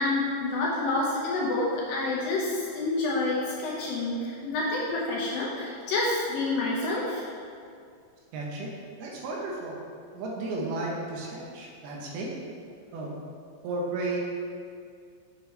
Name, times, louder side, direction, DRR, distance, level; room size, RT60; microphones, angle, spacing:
voice 1, 0.0-7.2, left 2 dB, 70° left, -4 dB, 2.4 m, -28 dB
voice 2, 8.3-8.7 9.0-9.8 10.1-12.3 12.9-13.1 13.6-14.2, right 2 dB, 75° right, -2 dB, 2.8 m, -33 dB
8.0 x 6.7 x 3.2 m, 2.3 s
omnidirectional pair, 4.7 m